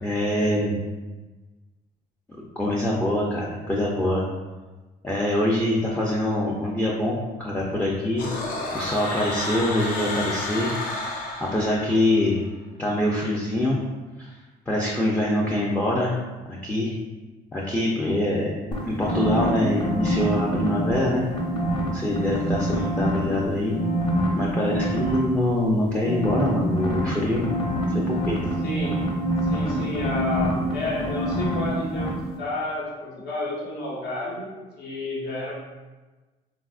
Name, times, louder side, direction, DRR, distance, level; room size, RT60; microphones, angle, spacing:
voice 1, 0.0-0.8 2.6-4.2 5.0-8.3 8.7-10.7 11.0-12.4 12.8-13.8 14.2-14.3 14.7-16.9 17.5-18.5 18.8-21.2 21.9-23.7 24.4-27.4 27.9-28.4, left 1 dB, 10° left, -4 dB, 0.4 m, -24 dB
sound 1, 8.2-12.2, left 2 dB, 60° left, 0.5 m, -31 dB
sound 2, 18.7-21.0 21.3-23.4 23.7-25.2 26.0-31.7 31.9-32.1, equal, 30° left, 0.9 m, -25 dB
voice 2, 28.6-29.0 29.4-32.1 32.4-35.5, left 1 dB, 75° left, -5 dB, 1.1 m, -31 dB
3.4 x 2.3 x 2.3 m, 1.2 s
cardioid pair, 110°, 17 cm